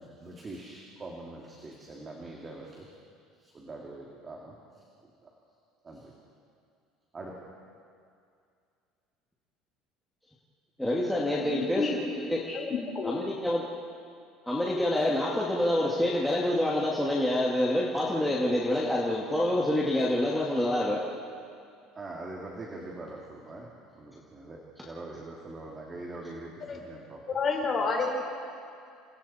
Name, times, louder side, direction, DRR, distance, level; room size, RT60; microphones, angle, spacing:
voice 1, 0.0-3.0 3.4-4.6 5.2-5.3 5.8-6.1 7.1-7.4 21.9-23.7 23.9-27.2, right 2 dB, 20° right, -2 dB, 2.7 m, -43 dB
voice 2, 10.8-12.6 13.0-13.6 14.5-21.0, left 1 dB, 5° left, -6 dB, 2.2 m, -27 dB
voice 3, 11.4-12.0 12.5-13.1 26.7-26.8 27.3-28.2, left 4 dB, 30° left, 1 dB, 4.6 m, -30 dB
29.0 x 28.0 x 4.4 m, 2.4 s
cardioid pair, 150°, 0 cm